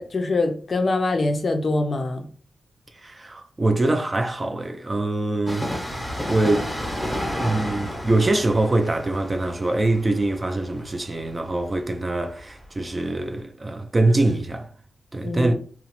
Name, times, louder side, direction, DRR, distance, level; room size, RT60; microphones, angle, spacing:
voice 1, 0.0-2.3 15.2-15.6, left 2 dB, 45° left, 0.4 m, -24 dB
voice 2, 3.0-5.7 6.2-6.7 7.4-14.7 15.1-15.6, right 2 dB, 25° right, 0.3 m, -23 dB
Train, 5.5-12.9 13.2-13.3, equal, 5° left, 0.7 m, -32 dB
2.8 x 2.0 x 2.9 m
wide cardioid pair, 110°, 0 cm